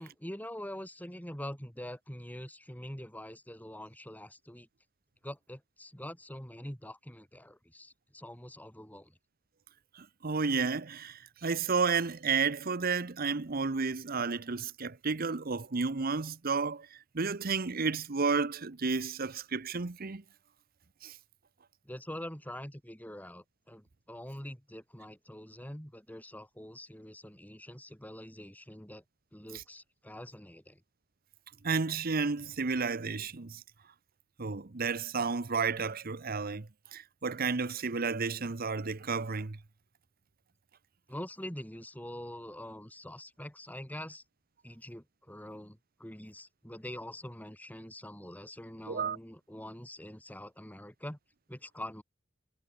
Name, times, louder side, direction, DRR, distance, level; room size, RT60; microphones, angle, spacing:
voice 1, 0.0-4.7 5.2-9.2 21.9-29.0 29.3-30.8 41.1-44.2 44.6-51.2 51.5-52.0, left 1 dB, 10° left, 5.7 m, -44 dB
voice 2, 10.2-16.9 17.1-20.2 21.0-21.1 31.6-33.6 34.4-39.6 48.9-49.2, right 4 dB, 45° right, 0.9 m, -32 dB
head